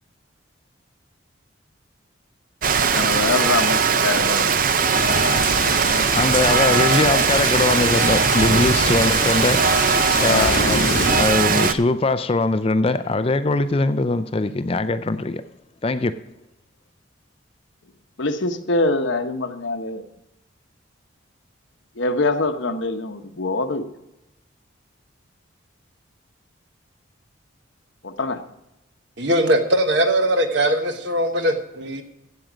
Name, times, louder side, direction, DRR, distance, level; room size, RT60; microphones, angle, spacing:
Rain, 2.6-11.7, right 6 dB, 45° right, 0.5 m, -19 dB
voice 1, 2.9-4.5 8.8-8.9 10.2-10.7 18.2-20.0 22.0-23.9 28.0-28.4, left 2 dB, 70° left, 1.0 m, -24 dB
sound 1, 4.9-11.2, left 3 dB, 85° left, 1.3 m, -27 dB
voice 2, 6.1-10.9 11.2-15.4 15.8-16.2, left 3 dB, 30° left, 0.4 m, -21 dB
voice 3, 29.2-32.0, right 1 dB, 60° right, 1.3 m, -20 dB
15.0 x 7.8 x 5.1 m
head